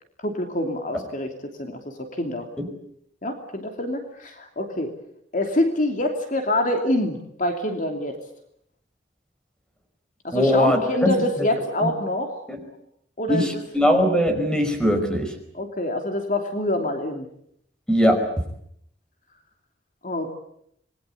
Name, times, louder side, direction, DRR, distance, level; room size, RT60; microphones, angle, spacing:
voice 1, 0.2-1.3 1.6-2.5 3.2-4.9 5.3-8.2 10.2-12.3 13.2-13.4 15.5-17.3 20.0-20.3, left 1 dB, 45° left, 5 dB, 3.0 m, -26 dB
voice 2, 10.3-11.1 11.8-11.9 12.5-12.6 13.3-15.3 17.9-18.3, equal, 5° left, 6 dB, 5.0 m, -20 dB
27.0 x 21.5 x 8.4 m, 0.71 s
head